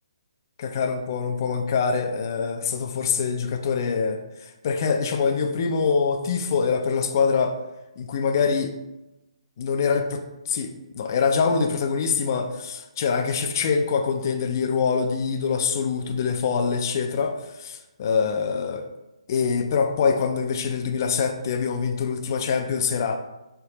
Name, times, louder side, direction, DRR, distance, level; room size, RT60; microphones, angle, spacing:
voice 1, 0.6-7.6 8.0-8.7 9.6-18.8 19.3-23.2, left 5 dB, 35° left, 5 dB, 0.3 m, -24 dB
4.6 x 3.3 x 2.8 m, 0.99 s
hypercardioid pair, 165°, 3 cm